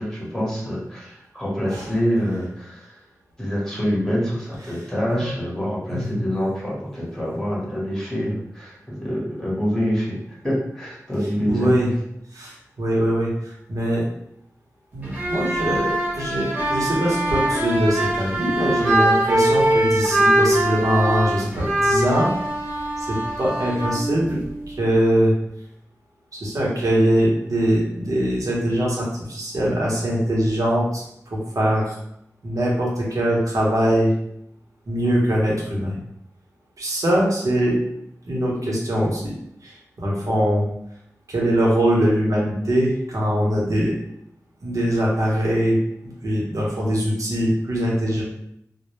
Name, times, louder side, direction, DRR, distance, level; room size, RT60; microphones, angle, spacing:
voice 1, 0.0-2.9 3.4-11.7, equal, 10° left, -6 dB, 0.9 m, -26 dB
voice 2, 5.9-6.2 11.5-11.9 12.3-14.1 14.9-22.3 23.0-25.3 26.4-32.0 32.4-34.1 34.9-36.0 36.8-37.8 38.2-39.3 39.6-40.6 41.3-43.9 44.6-45.8 46.0-48.2, equal, 70° right, -4 dB, 0.8 m, -22 dB
sound 1, 15.0-24.8, right 1 dB, 25° right, 0.9 m, -22 dB
2.1 x 2.0 x 3.0 m, 0.75 s
wide cardioid pair, 85°, 6 cm